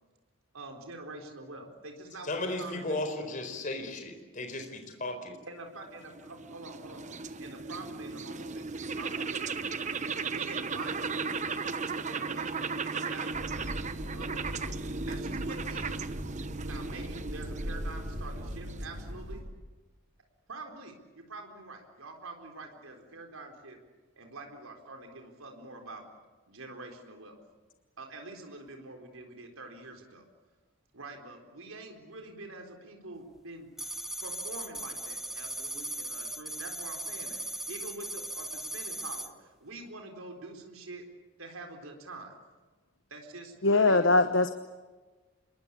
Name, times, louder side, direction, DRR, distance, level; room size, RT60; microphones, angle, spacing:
voice 1, 0.5-3.1 5.5-9.6 10.3-14.8 15.1-16.1 16.6-19.4 20.5-23.8 24.2-26.0 26.5-27.4 28.0-30.2 30.9-33.7 34.2-41.0 41.4-42.4 43.1-44.1, right 2 dB, 85° right, 3 dB, 4.1 m, -46 dB
voice 2, 2.2-5.4, left 2 dB, 40° left, 5 dB, 4.5 m, -35 dB
sound 1, 5.8-19.3, right 4 dB, 35° right, 1.0 m, -36 dB
sound 2, 13.3-19.4, equal, 60° right, 6.6 m, -40 dB
sound 3, 33.8-39.3, right 1 dB, ahead, 0.9 m, -38 dB
voice 3, 43.6-44.5, left 2 dB, 65° left, 9 dB, 1.1 m, -22 dB
27.0 x 22.5 x 8.6 m, 1.3 s
head